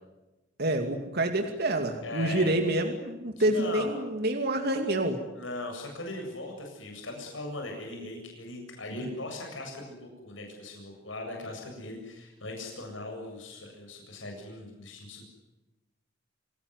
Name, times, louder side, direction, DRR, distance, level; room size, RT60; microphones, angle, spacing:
voice 1, 0.6-5.2, right 1 dB, 55° right, 5 dB, 2.6 m, -27 dB
voice 2, 2.0-2.7 3.4-3.9 5.4-15.3, left 2 dB, 85° left, 2 dB, 7.8 m, -39 dB
28.0 x 18.5 x 9.7 m, 1.0 s
head